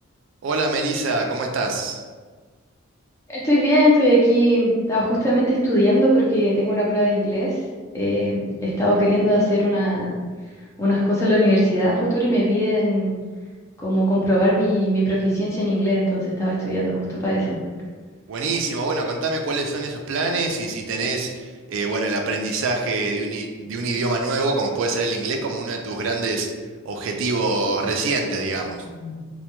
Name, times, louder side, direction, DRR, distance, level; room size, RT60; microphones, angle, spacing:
voice 1, 0.4-2.0 18.3-26.5 26.8-28.8, right 3 dB, 65° right, 2 dB, 0.3 m, -25 dB
voice 2, 3.3-7.6 7.9-10.1 10.8-13.1 13.8-17.6 28.8-29.3, equal, 15° left, -6 dB, 0.4 m, -20 dB
2.1 x 2.1 x 2.9 m, 1.5 s
head